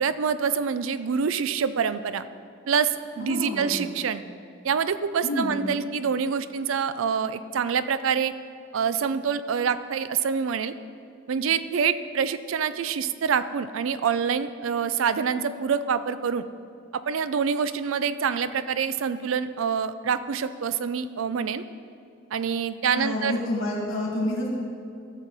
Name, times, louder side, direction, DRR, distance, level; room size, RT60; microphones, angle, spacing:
voice 1, 0.0-2.3 2.7-4.2 4.6-8.3 8.7-10.7 11.3-16.4 16.9-21.6 22.3-23.3, right 6 dB, 70° right, 13 dB, 0.4 m, -26 dB
voice 2, 3.2-3.8 5.2-5.6 22.9-24.5, left 1 dB, 85° left, -3 dB, 2.6 m, -28 dB
14.5 x 6.3 x 4.1 m, 2.5 s
head